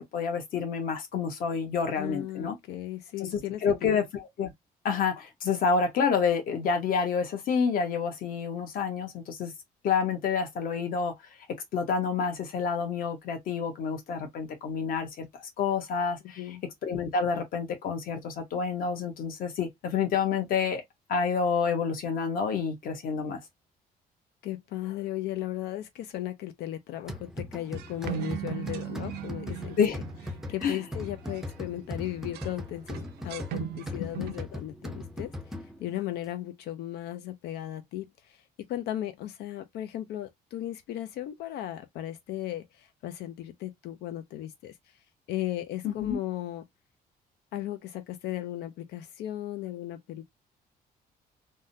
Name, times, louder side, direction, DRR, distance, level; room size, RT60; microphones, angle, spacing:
voice 1, 0.0-2.5 3.3-4.5 4.8-9.5 9.8-11.1 11.7-15.3 15.6-16.4 16.8-20.8 21.1-23.4 29.8-30.0 30.6-30.8 34.0-34.3 45.8-46.2, left 6 dB, 60° left, 1.1 m, -28 dB
voice 2, 1.9-4.0 16.4-16.6 24.4-30.0 30.5-45.0 45.3-46.6 47.5-50.2, left 13 dB, 90° left, 0.5 m, -36 dB
sound 1, 27.1-36.0, left 1 dB, 5° right, 0.4 m, -39 dB
sound 2, 27.8-31.7 32.1-32.5 32.9-34.4, right 13 dB, 80° right, 0.5 m, -38 dB
3.5 x 2.2 x 2.6 m
cardioid pair, 160°, 16 cm